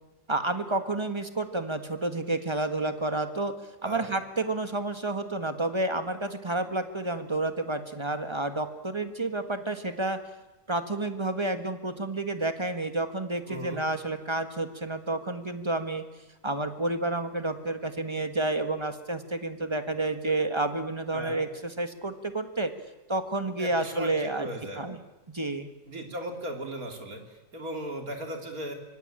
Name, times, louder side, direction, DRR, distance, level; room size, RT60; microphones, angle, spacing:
voice 1, 0.3-3.5 3.8-10.2 10.7-16.0 16.4-22.7 23.1-24.5 24.8-25.0 25.3-25.7, right 2 dB, 20° right, 8 dB, 1.6 m, -30 dB
voice 2, 3.8-4.1 13.5-14.0 21.1-21.4 23.6-24.9 25.9-28.7, right 1 dB, 60° right, 4 dB, 3.7 m, -37 dB
25.5 x 23.5 x 8.9 m, 1.1 s
omnidirectional pair, 1.7 m